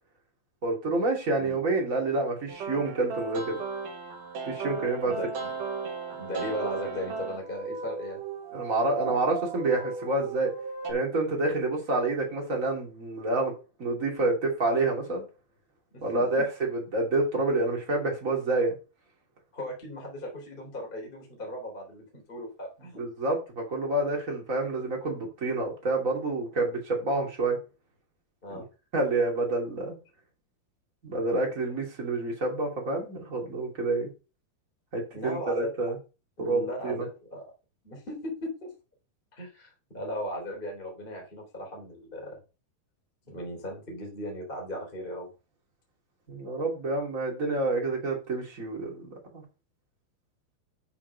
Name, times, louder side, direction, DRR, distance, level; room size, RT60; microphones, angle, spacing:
voice 1, 0.6-3.6 4.4-5.1 8.5-10.5 10.9-13.5 13.8-15.2 16.0-18.7 23.0-27.6 28.5-28.6 28.9-29.9 31.0-34.1 34.9-36.0 36.4-37.0 46.3-49.4, right 2 dB, 25° right, -1 dB, 1.9 m, -28 dB
sound 1, 2.5-10.9, right 5 dB, 60° right, 2.4 m, -36 dB
voice 2, 5.0-5.5 6.1-8.2 15.9-16.2 19.5-23.0 28.4-28.6 31.7-31.8 35.1-35.7 36.4-37.5 37.8-38.7 39.4-42.4 43.3-45.3, left 1 dB, 15° left, 0 dB, 2.7 m, -37 dB
8.9 x 5.9 x 5.5 m, 0.31 s
omnidirectional pair, 5.8 m